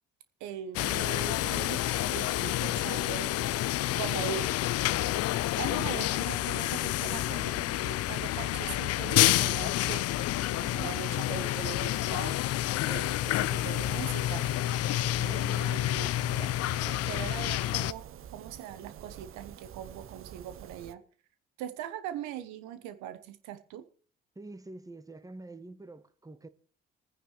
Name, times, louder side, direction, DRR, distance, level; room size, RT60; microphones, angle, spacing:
voice 1, 0.4-3.3 4.0-4.5 5.6-10.2 10.5-12.4 12.8-14.5 15.2-16.1 16.4-16.5 16.8-18.1 18.3-21.0 21.6-23.8, right 10 dB, 70° right, 1.0 m, -41 dB
sound 1, 0.8-17.9, left 14 dB, 55° left, 0.5 m, -29 dB
Wind instrument woodwind instrument, 8.3-13.9, left 10 dB, 70° left, 1.6 m, -54 dB
sound 2, 13.5-20.9, right 10 dB, 45° right, 0.7 m, -48 dB
voice 2, 24.3-26.5, right 2 dB, 10° right, 1.2 m, -46 dB
26.0 x 9.8 x 3.2 m
hypercardioid pair, 45°, 30 cm